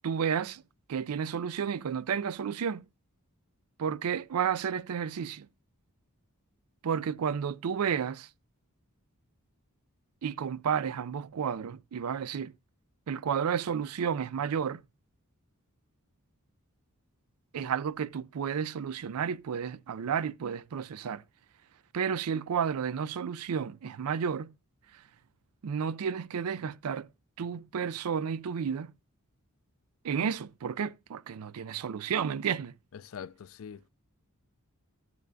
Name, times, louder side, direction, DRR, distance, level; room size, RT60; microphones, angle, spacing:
voice 1, 0.0-0.6 0.9-2.8 3.8-5.5 6.8-8.3 10.2-12.5 13.1-14.8 17.5-21.2 21.9-24.5 24.9-25.0 25.6-27.1 27.4-28.9 30.0-32.7, right 7 dB, 75° right, 0.4 m, -32 dB
voice 2, 32.9-33.9, left 7 dB, 65° left, 0.4 m, -44 dB
13.5 x 7.0 x 2.6 m
head